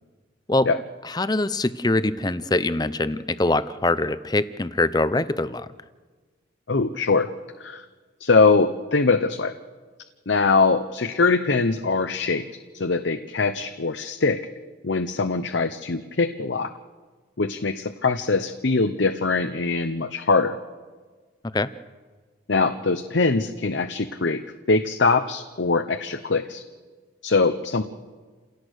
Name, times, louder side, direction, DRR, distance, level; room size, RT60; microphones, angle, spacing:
voice 1, 1.1-5.7 21.5-21.7, left 2 dB, 20° left, 14 dB, 0.6 m, -23 dB
voice 2, 6.7-7.3 7.6-7.8 8.2-9.5 10.3-12.4 12.7-14.4 14.8-16.7 17.4-20.5 22.5-24.4 24.7-26.6 27.2-27.8, left 4 dB, 65° left, 9 dB, 0.8 m, -22 dB
29.0 x 17.5 x 6.6 m, 1.4 s
head